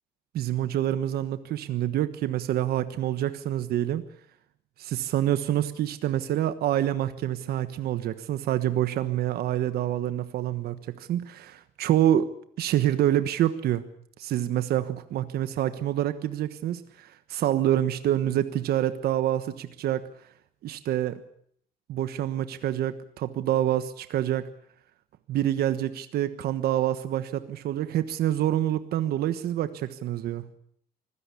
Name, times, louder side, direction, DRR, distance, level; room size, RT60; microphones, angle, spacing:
voice 1, 0.3-4.0 4.8-12.3 12.6-13.8 14.2-20.0 20.6-21.2 21.9-24.5 25.3-30.4, right 12 dB, 70° right, 11 dB, 1.3 m, -27 dB
24.5 x 16.5 x 8.4 m, 0.67 s
cardioid pair, 110°, 17 cm